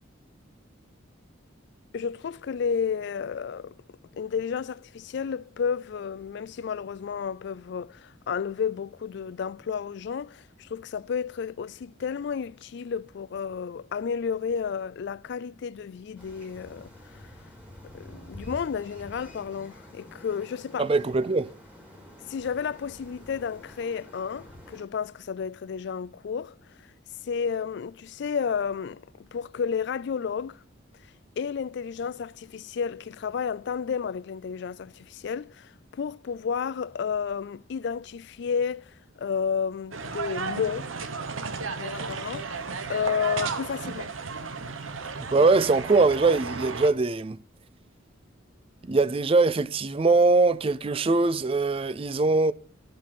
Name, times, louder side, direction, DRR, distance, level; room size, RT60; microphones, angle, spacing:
voice 1, 1.9-3.7 4.1-17.2 17.9-20.9 22.2-26.9 27.2-29.0 29.3-30.6 31.4-40.9 41.6-42.6 42.9-44.1, left 6 dB, 55° left, 0.3 m, -32 dB
sound 1, 16.2-24.8, equal, 5° right, 2.2 m, -48 dB
voice 2, 20.8-21.5 45.2-47.4 48.8-52.5, right 3 dB, 30° right, 0.4 m, -22 dB
sound 2, 39.9-46.9, right 4 dB, 80° right, 0.9 m, -34 dB
13.5 x 5.2 x 4.2 m
head